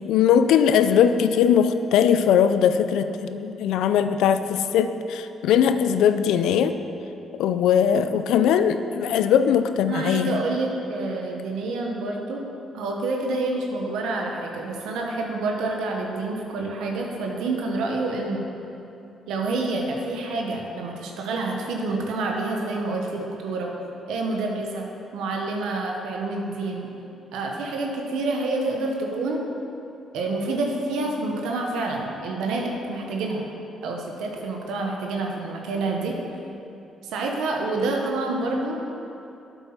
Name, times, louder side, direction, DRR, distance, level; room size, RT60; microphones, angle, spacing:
voice 1, 0.0-6.8 7.4-10.4, left 8 dB, 90° left, 10 dB, 0.4 m, -20 dB
voice 2, 9.9-12.4 12.7-18.5 19.3-23.7 24.1-24.9 25.1-26.9 27.3-29.4 30.1-33.5 33.8-36.1 37.0-38.8, right 2 dB, 90° right, 0 dB, 1.1 m, -28 dB
8.2 x 8.2 x 5.9 m, 2.8 s
cardioid pair, 90°, 0 cm